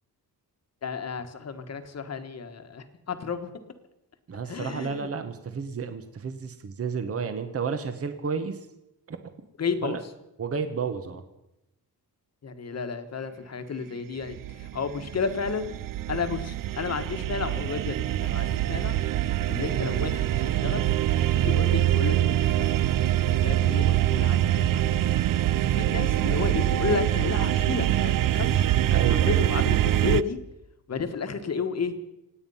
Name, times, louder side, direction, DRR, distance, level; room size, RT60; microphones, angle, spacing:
voice 1, 0.8-3.5 4.5-5.1 9.6-10.0 12.4-15.7 16.1-18.0 18.2-19.0 19.5-20.9 21.3-22.7 23.2-25.1 25.6-28.6 29.1-30.4 30.9-31.9, left 5 dB, 40° left, 8 dB, 1.4 m, -32 dB
voice 2, 4.3-8.6 9.1-9.2 9.8-10.0 10.4-11.2 28.9-29.5, right 5 dB, 35° right, 9 dB, 1.1 m, -32 dB
sound 1, 14.3-30.2, right 13 dB, 55° right, 0.5 m, -24 dB
27.0 x 9.2 x 5.6 m, 0.89 s
wide cardioid pair, 170°, 39 cm